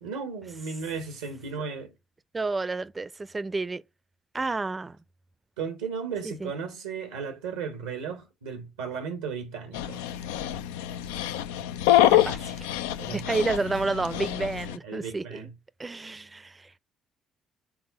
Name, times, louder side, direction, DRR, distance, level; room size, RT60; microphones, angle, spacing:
voice 1, 0.0-1.9 5.6-10.1 13.0-13.4 14.8-15.5, right 5 dB, 85° right, 0.8 m, -35 dB
voice 2, 2.3-3.8 4.3-5.0 6.2-6.5 12.1-12.7 13.1-15.5 15.8-16.7, right 3 dB, 25° right, 0.5 m, -30 dB
Dog, 9.7-14.8, left 13 dB, 80° left, 0.3 m, -26 dB
4.8 x 3.6 x 5.5 m
hypercardioid pair, 50°, 0 cm